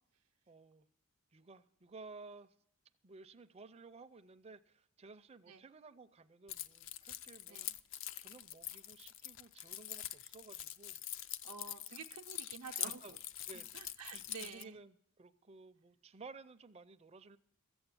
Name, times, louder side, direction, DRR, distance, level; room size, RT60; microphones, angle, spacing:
voice 1, 0.5-0.9 1.3-2.5 3.0-7.6 8.2-11.0 12.7-13.1 13.5-13.8 14.1-17.4, right 4 dB, 25° right, 11 dB, 0.4 m, -55 dB
Keys jangling, 6.5-14.6, left 11 dB, 60° left, 0.4 m, -45 dB
voice 2, 11.4-13.2 13.5-14.8, right 6 dB, 85° right, 2 dB, 0.6 m, -50 dB
14.0 x 7.9 x 8.2 m, 0.72 s
head